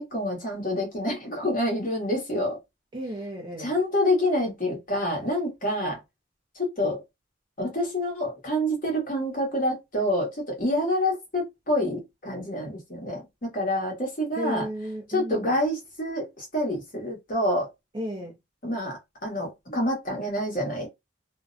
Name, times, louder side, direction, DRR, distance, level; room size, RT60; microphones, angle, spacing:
voice 1, 0.0-2.6 3.6-6.0 6.6-7.0 7.6-14.7 15.1-17.7 18.6-20.9, left 1 dB, 45° left, 1.0 m, -27 dB
voice 2, 2.9-3.7 14.4-15.5 17.9-18.4, equal, 25° right, 0.4 m, -34 dB
2.4 x 2.1 x 2.5 m
head